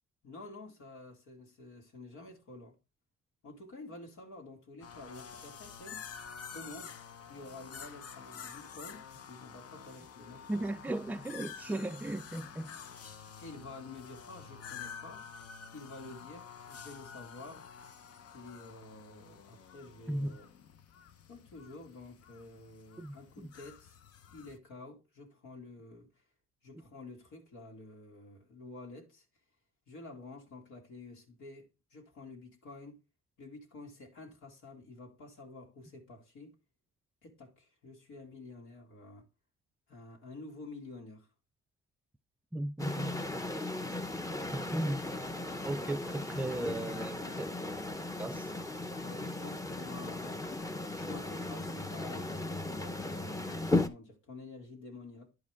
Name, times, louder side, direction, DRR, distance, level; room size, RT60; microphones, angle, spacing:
voice 1, 0.2-2.8 3.4-6.1 6.5-10.6 13.4-15.3 15.7-17.7 18.3-20.5 21.3-24.0 24.3-26.1 26.6-29.2 29.9-33.0 33.4-36.5 37.2-39.3 39.9-41.3 46.1-47.4 48.9-50.4 50.9-55.3, left 2 dB, 75° left, 2.4 m, -50 dB
sound 1, 4.8-24.6, left 7 dB, 50° left, 0.9 m, -49 dB
voice 2, 10.5-12.8 20.1-20.3 23.0-23.5 42.5-43.5 43.8-44.0 44.5-45.0 45.6-47.5 48.2-48.5, right 1 dB, 5° right, 0.4 m, -36 dB
sound 2, 42.8-53.9, left 2 dB, 10° left, 0.8 m, -36 dB
10.5 x 4.9 x 3.5 m
cardioid pair, 90°, 30 cm